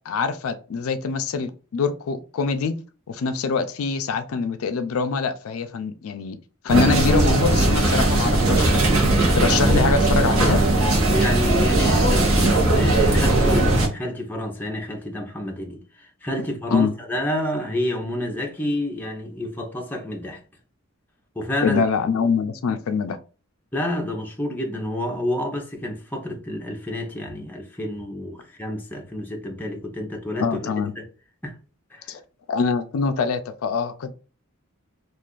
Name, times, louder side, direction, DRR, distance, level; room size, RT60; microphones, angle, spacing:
voice 1, 0.1-2.8 3.1-6.4 6.6-10.6 16.4-16.9 21.6-23.2 30.4-30.9 32.1-32.2 32.5-34.1, left 5 dB, 75° left, 0.4 m, -24 dB
sound 1, 6.7-13.9, right 2 dB, 70° right, 0.9 m, -18 dB
voice 2, 11.1-20.4 21.4-21.8 23.7-30.5 31.0-31.1 31.4-31.5 31.9-32.2, left 1 dB, 10° left, 0.6 m, -29 dB
2.4 x 2.4 x 3.7 m
head